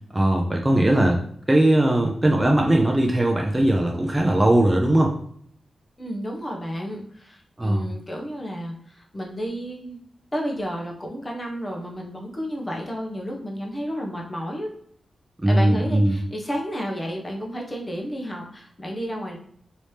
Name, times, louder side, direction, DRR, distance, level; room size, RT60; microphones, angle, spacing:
voice 1, 0.1-1.2 1.5-5.1 7.6-7.8 15.4-16.1, right 1 dB, 15° right, 0 dB, 0.5 m, -19 dB
voice 2, 6.0-10.0 10.3-14.7 15.5-19.4, equal, 20° left, 0 dB, 0.8 m, -31 dB
3.1 x 2.8 x 3.3 m, 0.64 s
wide cardioid pair, 95°, 0 cm